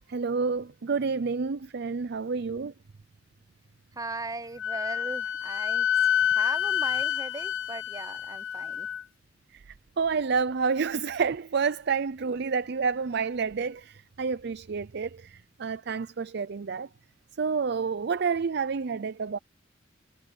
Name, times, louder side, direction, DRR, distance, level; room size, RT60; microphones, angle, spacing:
voice 1, 0.1-2.7 9.5-9.6 10.0-16.9 17.4-19.4, right 5 dB, 60° right, 0.5 m, -29 dB
voice 2, 4.0-5.9 6.3-8.9, right 3 dB, 20° right, 0.9 m, -38 dB
Wind instrument woodwind instrument, 4.6-9.0, left 10 dB, 90° left, 0.9 m, -28 dB
head